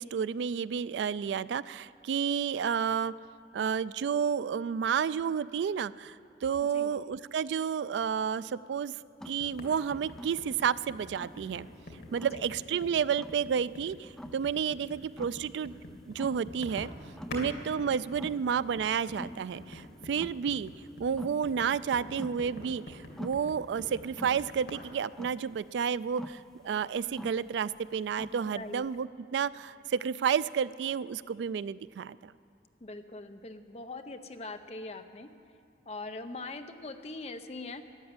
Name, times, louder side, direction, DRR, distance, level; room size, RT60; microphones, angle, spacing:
voice 1, 0.0-3.1 3.5-6.2 6.4-8.9 9.3-11.7 12.1-15.7 16.1-16.9 17.3-20.7 21.0-32.3, right 7 dB, 85° right, 18 dB, 0.3 m, -31 dB
voice 2, 6.6-6.9 12.3-12.4 17.4-17.6 28.5-28.8 32.8-35.3 35.9-37.8, left 2 dB, 35° left, 7 dB, 0.7 m, -42 dB
sound 1, 9.2-29.0, equal, 5° left, 0.4 m, -46 dB
sound 2, 9.4-17.5 17.8-24.7, left 1 dB, 80° left, 2.6 m, -46 dB
13.0 x 11.0 x 8.8 m, 2.4 s
head